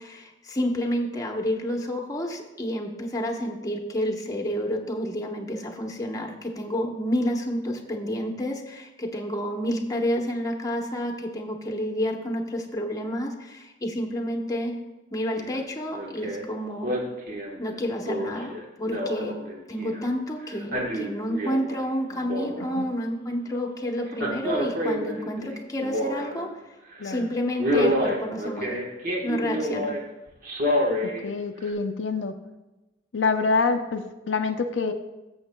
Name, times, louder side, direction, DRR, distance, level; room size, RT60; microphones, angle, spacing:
voice 1, 0.0-14.7 15.1-16.9 17.6-19.4 19.7-26.5 27.0-28.8 29.2-29.9, equal, 20° left, 2 dB, 1.0 m, -29 dB
Male speech man speaking, 15.4-15.6 15.9-16.4 16.8-20.0 20.5-21.8 22.1-22.9 24.1-26.5 26.9-27.1 27.6-30.0 30.4-31.2 31.7-31.8, equal, 50° right, 1.3 m, -28 dB
voice 2, 31.2-32.3 33.1-34.9, left 4 dB, 85° left, 6 dB, 0.5 m, -26 dB
14.0 x 7.1 x 2.2 m, 1.1 s
head